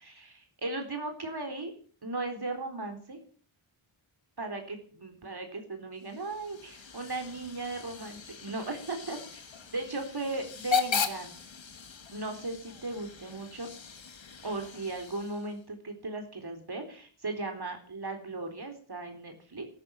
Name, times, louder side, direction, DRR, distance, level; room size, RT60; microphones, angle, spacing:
voice 1, 0.0-1.7 2.0-3.2 4.4-9.2 9.7-11.3 12.1-13.7 14.4-19.6, right 2 dB, 50° right, 4 dB, 3.9 m, -37 dB
Hiss / Train / Alarm, 6.0-15.6, left 5 dB, 65° left, 1.8 m, -37 dB
13.0 x 13.0 x 7.4 m, 0.43 s
wide cardioid pair, 80°, 48 cm